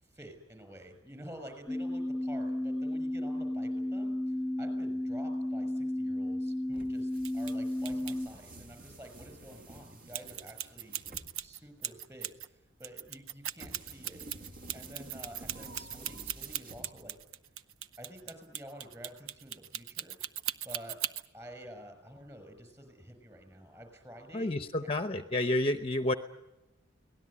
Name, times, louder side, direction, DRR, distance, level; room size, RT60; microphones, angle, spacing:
voice 1, 0.0-14.2 14.7-17.2 17.4-17.5 18.0-20.2 20.6-21.0 21.3-24.5, equal, 15° right, 7 dB, 5.8 m, -50 dB
sound 1, 1.7-8.3, left 1 dB, ahead, 1.7 m, -33 dB
sound 2, 6.7-17.3, right 1 dB, 45° right, 2.2 m, -51 dB
sound 3, 7.2-7.5 7.8-8.1 10.1-12.5 12.8-21.3, right 11 dB, 90° right, 0.8 m, -38 dB
voice 2, 24.3-26.1, left 1 dB, 30° left, 9 dB, 0.8 m, -30 dB
24.0 x 18.5 x 9.8 m, 0.99 s
head